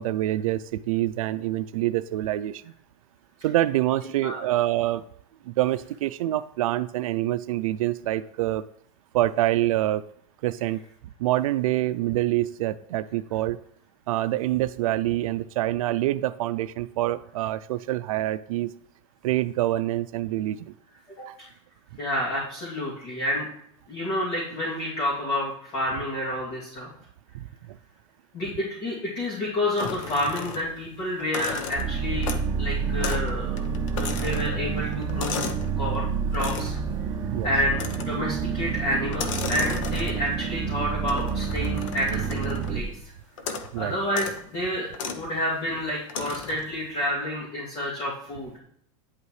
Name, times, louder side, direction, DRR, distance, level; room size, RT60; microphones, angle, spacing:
voice 1, 0.0-2.7 3.4-5.0 5.4-8.6 9.1-10.0 10.4-10.8 11.2-13.6 14.1-18.7 19.2-20.7 27.3-27.8 37.3-37.5 43.7-44.0, right 14 dB, 85° right, 13 dB, 0.4 m, -26 dB
voice 2, 22.0-23.5 23.9-26.9 28.3-35.3 35.8-36.8 37.4-43.1 43.8-48.6, left 1 dB, 40° left, -6 dB, 2.7 m, -29 dB
Air Temperature Knob A, 29.8-30.8 31.2-32.6 33.0-33.3 33.6-35.7 36.3-36.8 37.7-38.3 39.1-40.4 41.1-42.8 43.4-43.7 44.1-44.4 44.9-45.2 46.1-46.7, left 5 dB, 65° left, 1.1 m, -35 dB
sound 1, 31.7-42.8, right 6 dB, 20° right, 1.0 m, -29 dB
9.6 x 8.3 x 3.2 m, 0.67 s
supercardioid pair, 155°, 17 cm